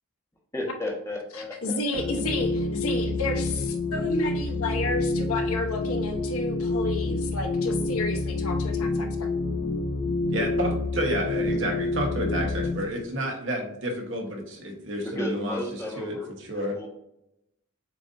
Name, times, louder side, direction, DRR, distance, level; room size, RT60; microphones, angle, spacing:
voice 1, 0.5-1.8 15.0-16.3 16.5-16.9, left 1 dB, 10° left, -2 dB, 1.1 m, -33 dB
voice 2, 1.3-9.3, left 2 dB, 75° left, 3 dB, 0.8 m, -31 dB
sound 1, 1.9-12.9, left 2 dB, 40° left, 0.4 m, -28 dB
voice 3, 10.3-15.6 16.0-16.2 16.5-16.8, equal, 55° right, 1 dB, 1.1 m, -30 dB
7.4 x 2.6 x 2.5 m, 0.82 s
head